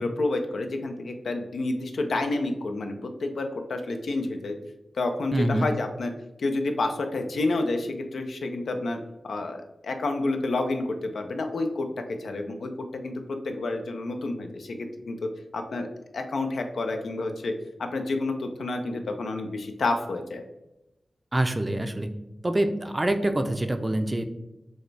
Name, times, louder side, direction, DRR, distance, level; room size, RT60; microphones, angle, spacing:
voice 1, 0.0-4.6 4.9-6.1 6.4-9.0 9.2-15.2 15.5-15.9 16.1-17.5 17.9-20.4, left 2 dB, 85° left, 5 dB, 0.5 m, -29 dB
voice 2, 5.3-5.7 21.3-22.1 22.4-24.2, right 1 dB, 25° right, 8 dB, 0.5 m, -25 dB
6.2 x 2.2 x 3.3 m, 0.95 s
wide cardioid pair, 70°, 0 cm